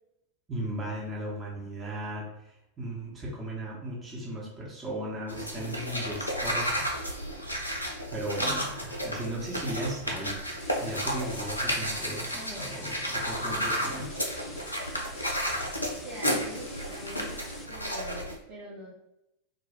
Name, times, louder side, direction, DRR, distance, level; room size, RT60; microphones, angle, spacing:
voice 1, 0.5-7.1 8.1-10.4 10.8-14.2, right 1 dB, 20° right, -5 dB, 0.8 m, -36 dB
sound 1, 5.3-18.4, equal, 85° left, 0.5 m, -32 dB
sound 2, 10.6-17.6, left 3 dB, 15° left, 0.3 m, -49 dB
voice 2, 15.9-17.4 17.7-18.9, right 1 dB, 50° right, -6 dB, 0.7 m, -44 dB
2.5 x 2.1 x 3.4 m, 0.88 s
figure-of-eight pair, 90°, 0 cm